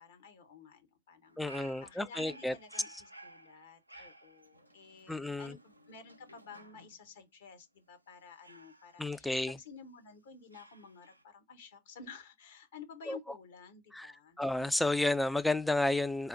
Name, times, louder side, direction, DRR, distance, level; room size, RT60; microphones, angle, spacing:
voice 1, 0.0-14.4, left 5 dB, 60° left, 0.9 m, -53 dB
Dog, 1.2-7.1 8.4-9.9 10.5-11.2, right 1 dB, 85° right, 0.4 m, -55 dB
voice 2, 1.4-2.5 5.1-5.6 9.0-9.6 13.1-13.2 13.9-16.3, left 2 dB, 5° left, 0.3 m, -31 dB
4.3 x 2.0 x 3.8 m
figure-of-eight pair, 90°, 0 cm